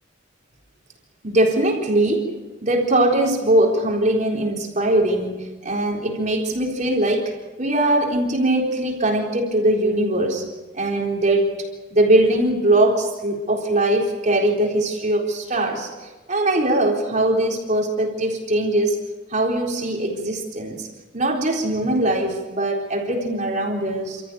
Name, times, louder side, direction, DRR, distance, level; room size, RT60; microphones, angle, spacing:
voice 1, 1.2-10.5 10.7-11.5 11.9-15.9 16.3-19.0 19.3-20.9 21.1-24.2, right 1 dB, 40° right, 0 dB, 4.0 m, -21 dB
29.5 x 14.0 x 9.3 m, 1.2 s
head